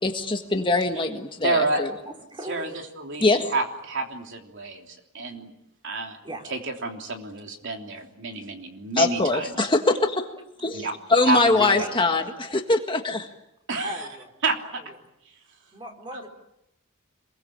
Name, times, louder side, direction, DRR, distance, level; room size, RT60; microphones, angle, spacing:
voice 1, 0.0-1.9 3.2-3.5 9.0-10.3 10.6-12.2 12.5-13.3, left 2 dB, 20° left, 5 dB, 1.7 m, -22 dB
voice 2, 1.4-1.8 2.5-2.7 3.0-3.2 3.5-5.5 5.8-6.2 6.5-9.7 10.7-10.9 11.3-11.9 13.7-14.1 14.4-14.8, right 3 dB, 55° right, 3 dB, 3.3 m, -29 dB
voice 3, 2.0-2.7 6.2-6.5 11.3-11.9 13.8-14.3 14.7-15.0 15.7-16.3, right 1 dB, 20° right, 3 dB, 4.4 m, -38 dB
27.5 x 22.5 x 8.8 m, 0.83 s
head